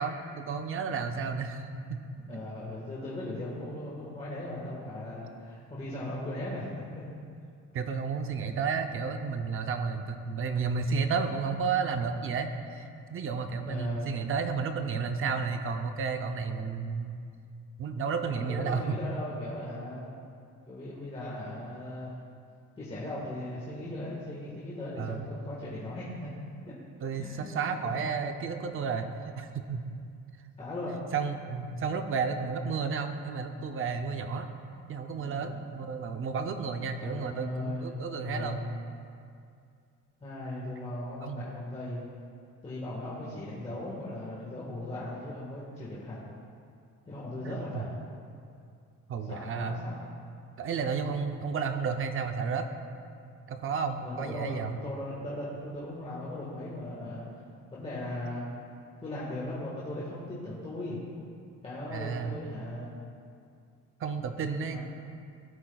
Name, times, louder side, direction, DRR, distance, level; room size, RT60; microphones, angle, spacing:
voice 1, 0.0-2.0 2.3-2.4 7.7-17.2 17.8-19.0 25.0-25.3 27.0-29.9 31.1-34.5 34.9-38.6 41.2-41.4 47.4-47.8 49.1-49.8 50.6-52.7 53.5-54.8 61.9-62.4 64.0-64.8, right 5 dB, 40° right, 6 dB, 0.6 m, -32 dB
voice 2, 2.2-7.0 13.6-14.1 18.3-20.1 20.7-22.1 22.8-26.3 27.1-27.6 28.0-28.1 30.6-31.0 35.1-35.6 37.0-38.8 40.2-42.1 42.6-46.2 47.1-47.9 49.3-49.9 54.0-57.3 57.7-58.4 59.0-61.0 61.6-62.9 64.7-64.8, left 1 dB, 20° left, -7 dB, 1.5 m, -38 dB
16.5 x 8.7 x 2.3 m, 2.4 s
cardioid pair, 160°, 32 cm